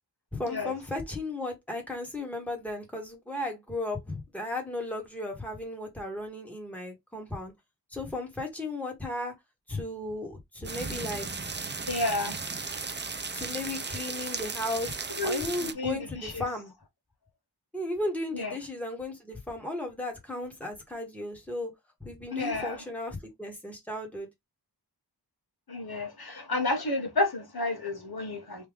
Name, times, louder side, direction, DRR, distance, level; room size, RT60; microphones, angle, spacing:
voice 1, 0.3-7.5 7.9-9.3 9.7-11.6 13.3-16.7 17.7-21.7 22.0-24.3, left 2 dB, 5° left, 1.5 m, -35 dB
sound 1, 10.6-15.7, right 4 dB, 25° right, 0.5 m, -35 dB
voice 2, 11.9-12.4 15.2-16.4 18.3-18.5 22.3-22.8 25.7-28.7, left 2 dB, 60° left, 1.4 m, -31 dB
3.4 x 2.5 x 3.5 m
wide cardioid pair, 60°, 41 cm